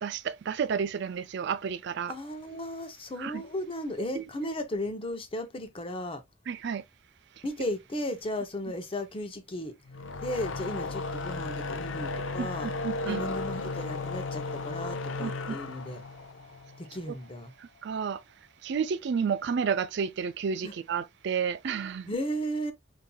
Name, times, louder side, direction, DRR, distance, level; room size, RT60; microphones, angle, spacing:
voice 1, 0.0-2.1 2.5-2.6 3.2-3.4 4.0-4.2 6.5-6.8 12.4-13.2 15.2-15.6 17.0-17.1 17.8-18.2 18.6-22.1, right 6 dB, 65° right, 0.4 m, -31 dB
voice 2, 2.1-6.2 7.4-9.7 10.2-12.7 13.1-16.0 16.8-17.5 20.6-20.7 22.1-22.7, left 1 dB, 30° left, 0.7 m, -35 dB
sound 1, 9.9-17.2, left 3 dB, 85° left, 0.6 m, -35 dB
5.3 x 2.7 x 2.3 m
head